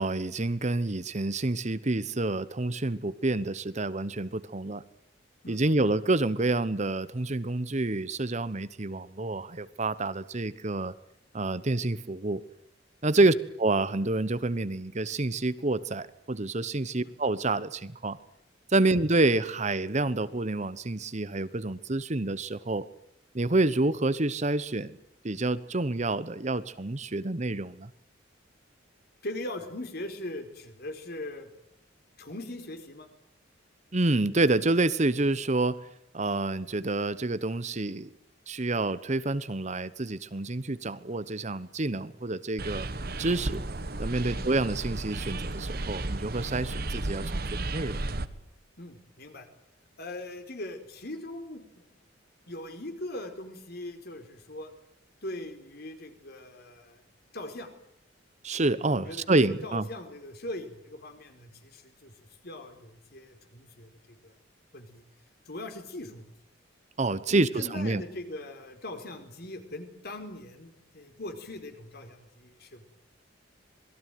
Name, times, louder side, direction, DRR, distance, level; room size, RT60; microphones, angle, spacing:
voice 1, 0.0-4.8 5.5-10.9 11.3-12.4 13.0-18.2 18.7-22.9 23.3-25.0 25.2-27.9 33.9-35.8 36.1-38.1 38.5-42.9 43.2-43.6 44.0-48.0 58.4-59.9 67.0-68.0, right 2 dB, 35° right, 15 dB, 1.0 m, -28 dB
voice 2, 29.2-31.5 32.2-33.1 44.3-44.5 48.8-49.5 50.0-51.8 52.5-54.7 55.2-57.0 57.3-57.7 58.9-64.4 64.7-65.0 65.5-66.3 67.3-72.8, left 1 dB, 55° left, 6 dB, 4.6 m, -41 dB
sound 1, 42.6-48.3, right 2 dB, 55° right, 1.5 m, -33 dB
27.0 x 21.0 x 9.3 m, 0.75 s
head